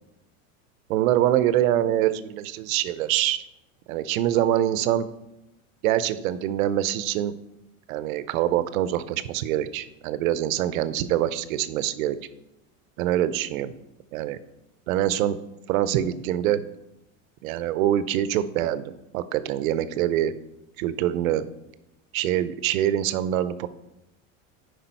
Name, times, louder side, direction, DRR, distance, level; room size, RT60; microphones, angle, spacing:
voice 1, 0.9-3.4 3.9-5.1 5.8-7.3 7.9-12.2 13.0-13.7 14.1-14.4 14.9-15.4 15.7-16.6 17.4-20.3 20.8-21.4 22.1-23.7, right 12 dB, 80° right, 14 dB, 0.7 m, -24 dB
10.0 x 5.1 x 4.5 m, 0.92 s
supercardioid pair, 110°, 40 cm